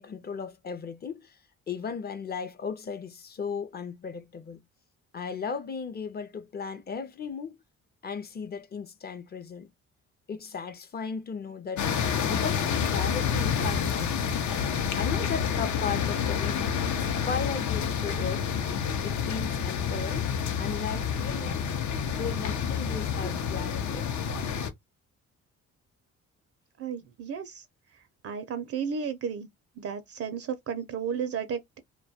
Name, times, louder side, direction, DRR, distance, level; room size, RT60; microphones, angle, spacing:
voice 1, 0.0-1.4 1.7-4.6 5.1-7.6 8.0-9.7 10.3-11.9 12.2-14.4 15.0-16.8 17.2-18.4 19.0-20.3 20.6-21.7 22.1-24.1, left 5 dB, 35° left, 0.5 m, -36 dB
sound 1, 11.8-24.7, left 7 dB, 70° left, 0.6 m, -28 dB
voice 2, 26.8-27.6 28.2-29.5 29.8-31.8, right 7 dB, 50° right, 0.4 m, -33 dB
2.2 x 2.2 x 2.7 m
cardioid pair, 90°, 30 cm